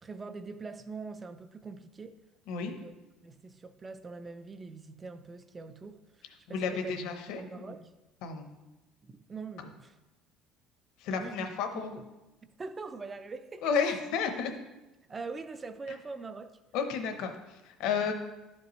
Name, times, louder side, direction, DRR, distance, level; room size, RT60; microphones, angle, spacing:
voice 1, 0.0-2.2 2.6-2.9 3.2-6.2 6.5-7.0 7.3-7.9 9.0-9.9 11.1-12.0 12.6-13.7 14.4-14.5 15.1-16.6 17.9-18.1, right 4 dB, 15° right, 0.3 m, -43 dB
voice 2, 6.5-7.7 8.2-8.5 11.0-12.0 13.6-14.5 16.7-18.1, left 6 dB, 65° left, 0.8 m, -32 dB
11.5 x 5.3 x 3.0 m
cardioid pair, 180°, 0 cm